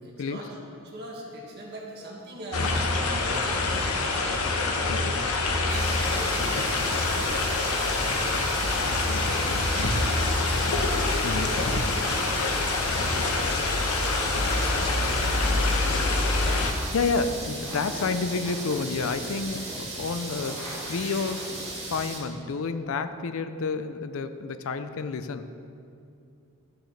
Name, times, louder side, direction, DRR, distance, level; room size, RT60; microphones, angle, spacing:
voice 1, 0.0-4.4 5.6-6.7 9.5-12.7 13.0-13.6 13.9-15.1 15.4-16.5 17.7-18.1 18.9-19.1, right 1 dB, 50° right, -3 dB, 1.8 m, -42 dB
sound 1, 2.5-16.7, left 3 dB, 85° left, 0.9 m, -25 dB
voice 2, 4.9-5.2 8.9-9.9 11.2-11.6 16.9-25.5, left 4 dB, 65° left, 10 dB, 0.5 m, -30 dB
sound 2, 5.7-22.2, right 2 dB, 30° right, 1.7 m, -37 dB
sound 3, 14.3-22.0, equal, 15° left, 1.6 m, -42 dB
13.5 x 6.4 x 3.3 m, 2.5 s
head